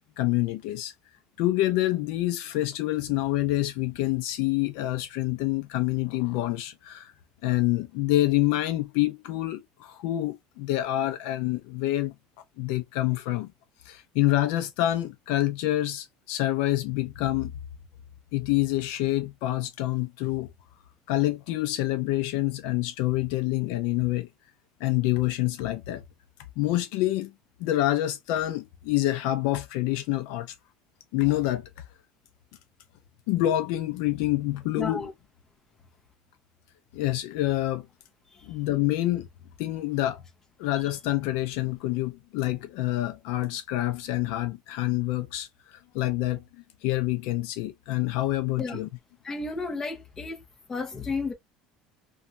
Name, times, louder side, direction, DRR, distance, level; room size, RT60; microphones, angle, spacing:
voice 1, 0.2-0.9 1.4-7.1 7.4-12.1 12.6-13.5 13.9-17.5 18.3-20.5 21.1-24.3 24.8-26.0 26.6-27.3 27.6-30.5 31.1-31.7 33.3-35.0 36.9-37.9 38.4-39.3 39.6-40.2 40.6-46.4 46.8-48.9, left 15 dB, 70° left, 0.5 m, -27 dB
voice 2, 34.8-35.1 38.3-38.5 48.6-48.8 49.2-50.4 50.7-51.3, left 4 dB, 20° left, 0.8 m, -32 dB
3.0 x 2.3 x 2.5 m
cardioid pair, 165°, 2 cm